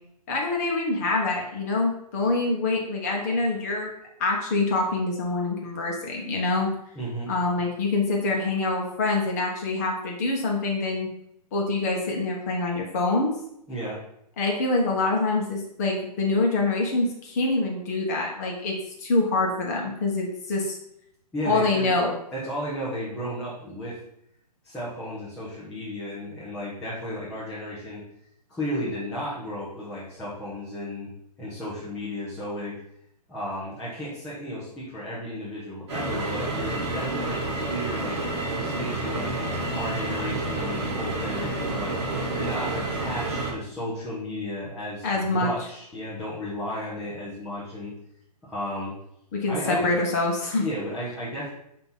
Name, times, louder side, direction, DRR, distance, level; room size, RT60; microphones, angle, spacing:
voice 1, 0.3-3.9 4.2-6.7 7.3-11.1 11.5-13.3 14.4-20.8 21.4-22.2 45.0-45.5 49.3-50.6, left 3 dB, 25° left, -1 dB, 1.1 m, -25 dB
voice 2, 6.9-7.3 13.7-14.0 21.3-21.9 22.3-24.0 24.6-28.0 28.5-31.1 31.4-32.8 33.3-38.2 38.6-47.9 48.4-48.9 49.5-49.9 50.6-51.5, equal, 5° left, -11 dB, 0.7 m, -33 dB
sound 1, 35.9-43.5, right 2 dB, 40° right, 1.9 m, -29 dB
5.9 x 2.9 x 5.4 m, 0.75 s
hypercardioid pair, 170°, 21 cm